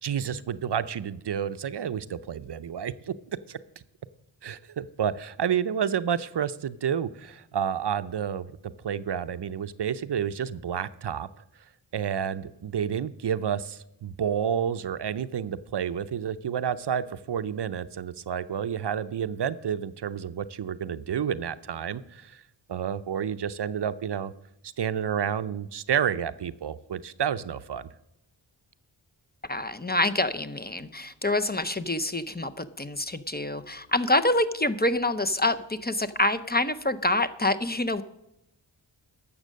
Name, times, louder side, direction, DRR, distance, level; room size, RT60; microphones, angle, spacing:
voice 1, 0.0-3.1 3.5-3.6 4.4-8.5 8.8-11.3 11.9-22.4 22.7-24.3 24.6-27.9, right 8 dB, 60° right, 14 dB, 0.6 m, -30 dB
voice 2, 29.5-38.0, left 2 dB, 20° left, 11 dB, 0.6 m, -26 dB
12.0 x 7.4 x 6.3 m, 0.85 s
wide cardioid pair, 60°, 46 cm